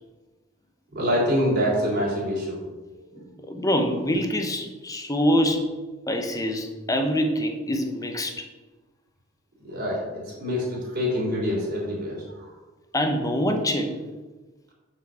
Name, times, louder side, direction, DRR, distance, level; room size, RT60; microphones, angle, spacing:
voice 1, 0.9-2.6 3.4-3.5 9.6-12.5, equal, 55° right, -5 dB, 3.6 m, -26 dB
voice 2, 3.2-5.7 6.1-8.4 12.9-13.9, equal, 15° left, 4 dB, 1.0 m, -25 dB
7.3 x 6.4 x 7.0 m, 1.2 s
head